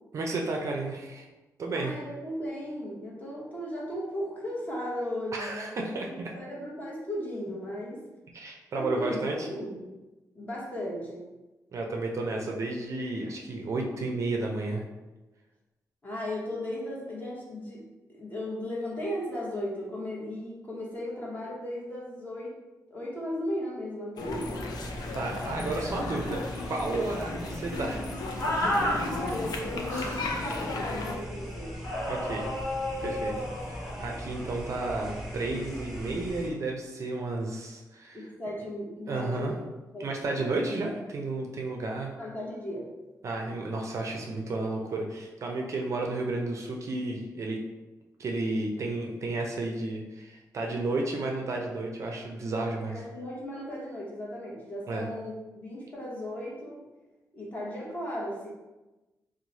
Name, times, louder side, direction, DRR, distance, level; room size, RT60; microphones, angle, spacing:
voice 1, 0.1-1.2 1.6-1.9 5.3-6.4 8.3-9.4 11.7-14.8 25.1-28.0 32.1-32.5 33.0-38.2 39.1-39.5 40.0-42.1 43.2-47.6 48.2-53.0 54.9-55.1, right 2 dB, 50° right, 1 dB, 0.4 m, -32 dB
voice 2, 1.7-8.0 8.7-9.2 9.5-9.9 10.3-11.3 16.0-17.8 18.1-22.5 22.9-24.7 29.0-31.8 38.1-39.6 39.9-40.7 42.1-42.9 52.7-56.8 57.3-58.5, left 1 dB, 25° left, -5 dB, 0.9 m, -36 dB
sound 1, 24.2-31.2, left 3 dB, 85° left, 0.4 m, -36 dB
sound 2, 24.2-36.5, equal, 5° right, 0.6 m, -39 dB
sound 3, 28.4-29.0 29.8-30.3 31.8-34.2, left 1 dB, 55° left, 1.1 m, -31 dB
3.0 x 2.0 x 3.9 m, 1.1 s
wide cardioid pair, 145°, 7 cm